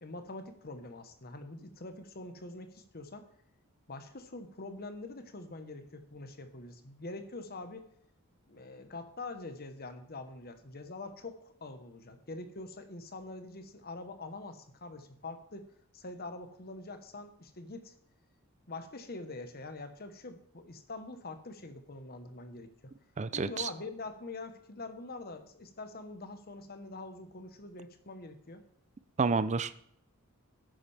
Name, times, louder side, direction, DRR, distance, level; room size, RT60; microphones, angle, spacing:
voice 1, 0.0-3.3 3.9-7.9 8.5-15.6 15.9-17.9 18.7-22.9 23.3-28.6, left 2 dB, 45° left, 8 dB, 1.2 m, -44 dB
voice 2, 23.2-23.7 29.2-29.8, right 4 dB, 30° right, 14 dB, 0.5 m, -29 dB
11.0 x 8.9 x 3.4 m, 0.67 s
head